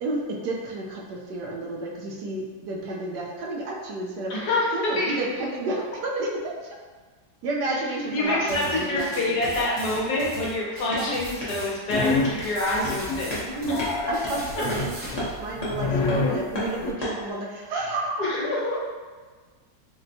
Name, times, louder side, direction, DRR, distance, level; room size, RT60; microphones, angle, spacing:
voice 1, 0.0-4.3 4.7-6.3 7.4-9.5 10.1-10.3 10.9-11.2 13.5-18.3, right 2 dB, 75° right, -3 dB, 1.1 m, -31 dB
voice 2, 4.3-5.1 8.1-13.5 18.2-18.7, left 2 dB, 70° left, -4 dB, 1.2 m, -26 dB
sound 1, 8.2-17.3, left 2 dB, 40° left, 0.5 m, -37 dB
sound 2, 8.5-15.1, equal, 45° right, 1.3 m, -39 dB
sound 3, 11.9-12.5 12.8-13.3 13.6-16.9, left 3 dB, 90° left, 1.3 m, -27 dB
4.3 x 2.1 x 2.6 m, 1.4 s
omnidirectional pair, 1.9 m